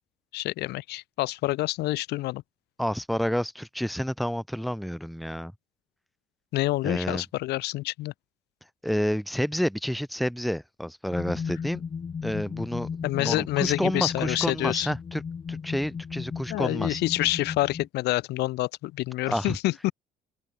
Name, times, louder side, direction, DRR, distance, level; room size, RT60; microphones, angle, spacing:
voice 1, 0.3-2.4 6.5-8.1 13.0-14.9 16.5-19.9, left 18 dB, 80° left, 1.0 m, -27 dB
voice 2, 2.8-5.5 6.8-7.2 8.8-11.8 12.2-12.9 13.2-15.2 15.5-17.0 19.3-19.6, equal, ahead, 1.0 m, -29 dB
sound 1, 11.1-17.9, left 6 dB, 30° left, 0.9 m, -35 dB
cardioid pair, 110°, 17 cm